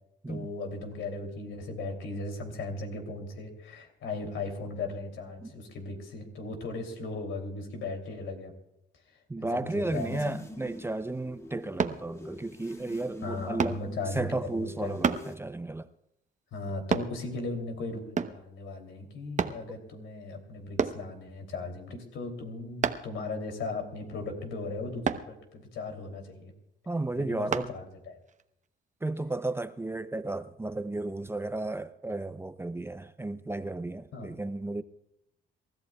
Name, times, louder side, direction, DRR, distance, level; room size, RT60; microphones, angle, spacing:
voice 1, 0.3-8.5 9.5-10.4 13.2-15.0 16.5-26.5 27.2-28.2 34.1-34.3, left 3 dB, 80° left, 3.0 m, -37 dB
voice 2, 9.3-13.8 14.1-15.9 26.9-27.7 29.0-34.8, right 2 dB, 10° right, 0.5 m, -33 dB
sound 1, 9.7-15.4, left 2 dB, 15° left, 1.4 m, -45 dB
sound 2, 11.8-12.0 13.6-13.8 15.0-15.3 16.9-17.1 18.2-18.4 19.4-19.6 20.8-21.0 22.8-23.1 25.0-25.3 27.5-27.7 28.3-28.4, right 6 dB, 40° right, 0.9 m, -28 dB
27.5 x 14.0 x 2.3 m
cardioid pair, 90°, 20 cm